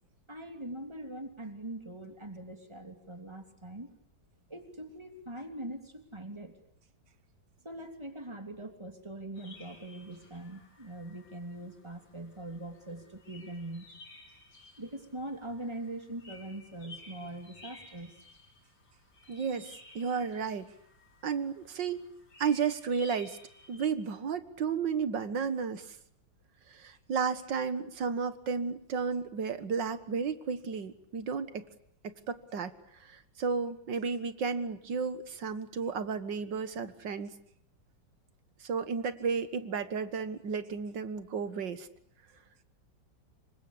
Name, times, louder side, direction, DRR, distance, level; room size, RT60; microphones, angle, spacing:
voice 1, 0.3-3.9 4.5-6.5 7.6-13.9 14.8-18.1, right 1 dB, 15° right, 6 dB, 3.1 m, -42 dB
sound 1, 9.3-23.9, left 3 dB, 80° left, 5.9 m, -55 dB
voice 2, 19.3-20.7 21.2-22.1 22.4-23.4 23.7-26.0 26.7-31.6 32.0-37.3 38.6-41.9, right 5 dB, 70° right, 12 dB, 2.2 m, -33 dB
26.5 x 24.5 x 8.5 m, 0.69 s
omnidirectional pair, 2.0 m